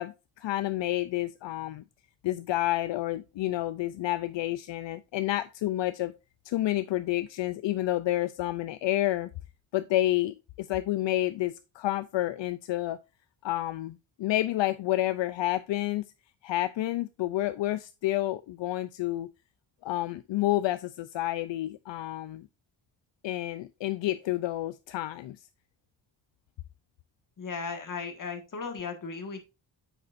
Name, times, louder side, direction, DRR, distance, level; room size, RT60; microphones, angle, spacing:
voice 1, 0.0-1.8 2.2-6.1 6.4-9.3 9.7-13.0 13.4-16.0 16.4-19.3 19.8-22.5 23.2-25.4, left 15 dB, 75° left, 0.5 m, -29 dB
voice 2, 27.4-29.5, left 5 dB, 45° left, 1.8 m, -36 dB
8.6 x 6.7 x 2.5 m
wide cardioid pair, 130°, 44 cm